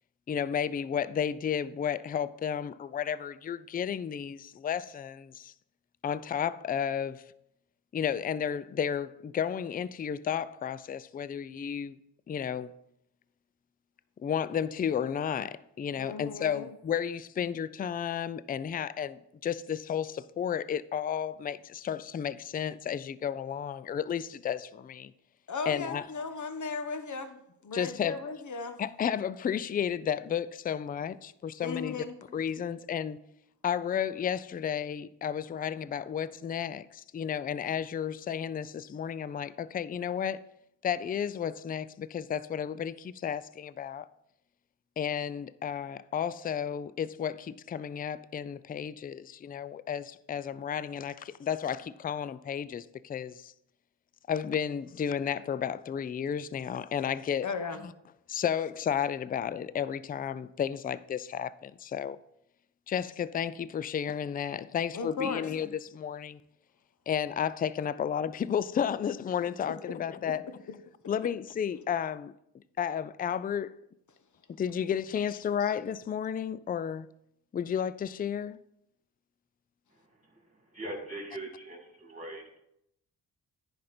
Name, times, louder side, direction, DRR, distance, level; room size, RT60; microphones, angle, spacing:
voice 1, 0.3-5.5 6.0-7.2 7.9-11.9 12.3-12.7 14.2-25.1 25.7-26.1 27.7-28.2 28.8-32.0 32.3-33.2 33.6-40.4 40.8-44.1 45.0-53.5 54.3-57.5 57.8-57.9 58.3-62.2 62.9-66.4 67.1-70.5 71.1-72.3 72.8-73.7 74.6-77.1 77.5-78.6, left 8 dB, 20° left, 0.3 m, -32 dB
voice 2, 16.0-16.7 25.5-27.4 27.6-28.8 31.6-32.1 57.4-57.8 64.9-65.5 69.4-69.5 69.8-69.9 70.2-70.3, left 4 dB, 40° left, 1.0 m, -36 dB
voice 3, 79.9-82.6, right 1 dB, 15° right, 2.8 m, -42 dB
10.0 x 5.1 x 4.2 m
cardioid pair, 60°, 45 cm